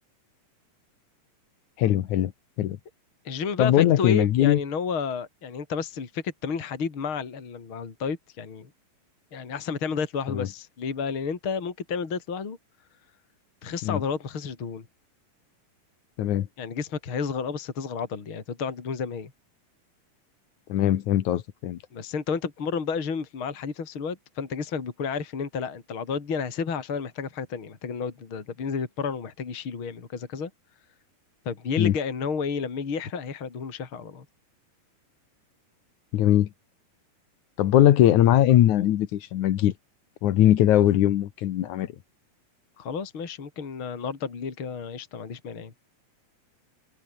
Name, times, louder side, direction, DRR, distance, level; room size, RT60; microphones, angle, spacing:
voice 1, 1.8-2.3 2.6-2.8 3.6-4.6 10.3-10.5 13.8-14.0 16.2-16.5 20.7-21.8 31.8-31.9 36.1-36.5 37.6-39.7 40.2-41.9, left 12 dB, 65° left, 2.4 m, -20 dB
voice 2, 3.3-8.7 9.3-12.6 13.6-14.9 16.6-19.3 21.9-30.5 31.5-34.3 42.8-45.7, left 5 dB, 35° left, 3.6 m, -31 dB
open air
omnidirectional pair, 4.1 m